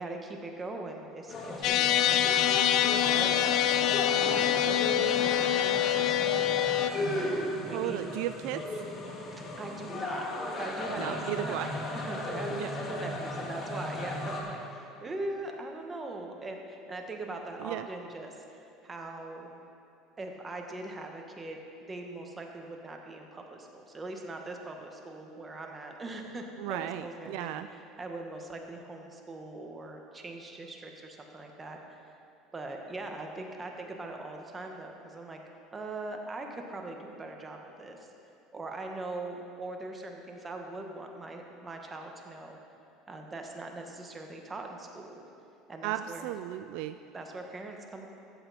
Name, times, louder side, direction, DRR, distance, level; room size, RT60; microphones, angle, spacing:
voice 1, 0.0-6.7 7.6-8.0 9.6-10.3 10.6-11.6 11.9-19.5 20.2-32.1 32.5-35.4 35.7-38.1 38.5-42.6 43.1-45.2 45.7-46.3 47.1-48.1, right 2 dB, 20° right, 2 dB, 1.5 m, -41 dB
sound 1, 1.3-14.4, left 1 dB, 40° left, 2.1 m, -35 dB
sound 2, 1.6-6.9, left 12 dB, 60° left, 0.5 m, -25 dB
voice 2, 7.7-8.6 11.0-11.7 12.5-12.7 17.6-17.9 26.6-27.7 45.8-47.0, right 14 dB, 75° right, 10 dB, 0.3 m, -35 dB
14.0 x 8.0 x 4.3 m, 2.8 s
supercardioid pair, 100°, 0 cm